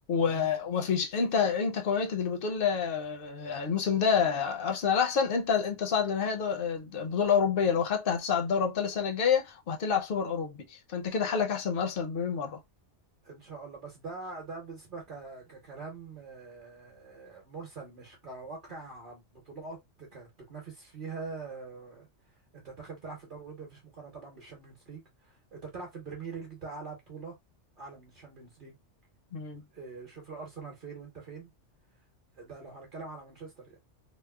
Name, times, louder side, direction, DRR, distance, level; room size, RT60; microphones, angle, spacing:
voice 1, 0.1-12.6 29.3-29.6, left 6 dB, 60° left, 0.7 m, -28 dB
voice 2, 13.2-22.1 22.5-27.4 27.8-28.8 29.7-31.5 32.4-33.8, right 4 dB, 50° right, 1.0 m, -44 dB
3.0 x 2.0 x 2.2 m
omnidirectional pair, 1.2 m